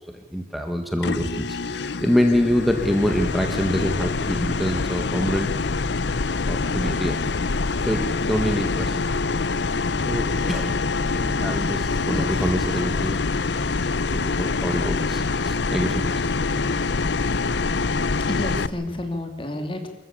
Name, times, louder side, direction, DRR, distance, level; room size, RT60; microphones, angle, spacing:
voice 1, 0.1-5.5 6.5-7.2 7.8-9.4 10.1-10.8 11.1-13.2 14.1-16.2, equal, ahead, 4 dB, 1.7 m, -26 dB
sound 1, 1.0-18.7, left 3 dB, 65° left, 0.7 m, -25 dB
voice 2, 12.1-12.5 18.3-19.9, left 1 dB, 25° left, 6 dB, 2.6 m, -30 dB
26.0 x 14.5 x 8.6 m, 1.1 s
head